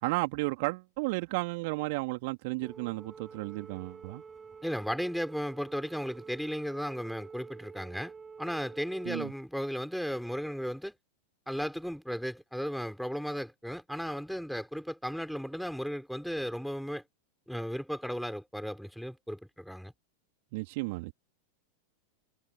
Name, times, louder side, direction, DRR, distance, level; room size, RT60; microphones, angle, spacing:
voice 1, 0.0-4.2 9.1-9.3 20.5-21.1, right 25 dB, 50° right, 3.6 m, -33 dB
sound 1, 2.6-9.2, right 5 dB, 15° right, 7.6 m, -49 dB
voice 2, 4.6-8.1 8.4-10.9 11.5-17.0 17.5-19.9, equal, ahead, 5.6 m, -35 dB
figure-of-eight pair, 90°, 0 cm